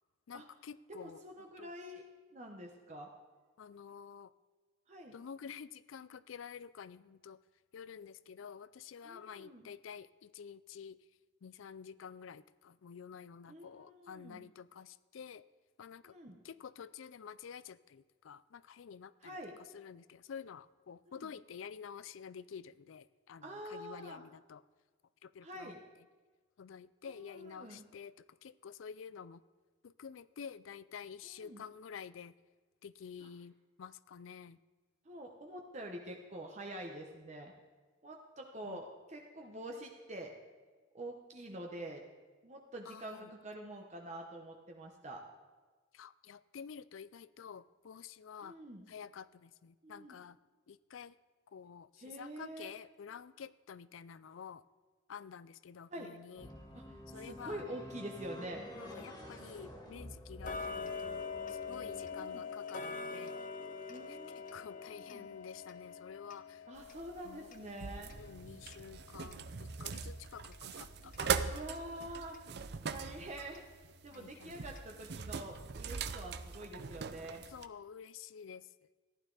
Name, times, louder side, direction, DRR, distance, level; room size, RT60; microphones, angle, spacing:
voice 1, 0.3-1.2 1.6-1.7 3.6-4.3 5.1-7.4 7.7-11.1 11.4-15.5 15.8-16.2 16.4-24.6 25.2-26.0 26.6-29.4 29.8-32.3 32.8-34.6 38.6-38.8 42.9-43.3 45.9-48.6 48.9-50.4 50.7-51.2 51.5-54.6 55.1-56.5 57.1-57.7 58.8-63.4 64.1-66.7 67.2-67.5 68.2-71.4 74.1-74.6 77.5-78.7, left 7 dB, 90° left, 18 dB, 0.4 m, -50 dB
voice 2, 0.9-2.0 2.3-3.1 4.9-5.1 9.0-9.7 13.5-14.4 16.0-16.4 19.2-19.6 21.1-21.3 23.4-24.2 25.4-25.8 27.1-27.8 31.2-31.6 33.2-33.3 35.0-37.5 38.0-40.3 40.9-42.0 42.4-45.2 48.4-48.8 49.8-50.1 52.0-52.7 55.9-56.1 57.1-58.6 62.1-62.4 63.9-65.3 66.7-68.1 71.5-72.4 72.8-73.6 74.0-77.4, right 1 dB, 35° right, 1 dB, 1.0 m, -46 dB
sound 1, 56.4-62.0, equal, 20° left, 2.0 m, -49 dB
Tick-tock, 60.4-71.3 71.7-71.8 72.3-72.4 72.9-73.0 73.5-73.6 74.1-74.2 74.8-74.9 75.3-75.4, left 4 dB, 45° left, 0.7 m, -45 dB
sound 2, 66.8-77.7, right 6 dB, 55° right, 0.6 m, -41 dB
14.5 x 11.5 x 4.0 m, 1.4 s
head